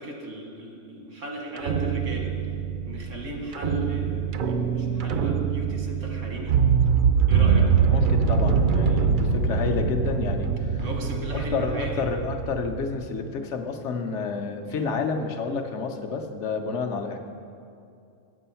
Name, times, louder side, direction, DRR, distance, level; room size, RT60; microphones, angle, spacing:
voice 1, 0.0-2.3 2.9-6.5 7.3-7.7 10.8-12.1 14.7-14.9, right 1 dB, 85° right, 1 dB, 1.7 m, -37 dB
sound 1, 1.6-12.8, right 6 dB, 60° right, 0.5 m, -24 dB
voice 2, 7.9-10.9 11.3-17.2, left 4 dB, 75° left, 5 dB, 1.0 m, -30 dB
8.3 x 7.6 x 5.6 m, 2.6 s
omnidirectional pair, 1.3 m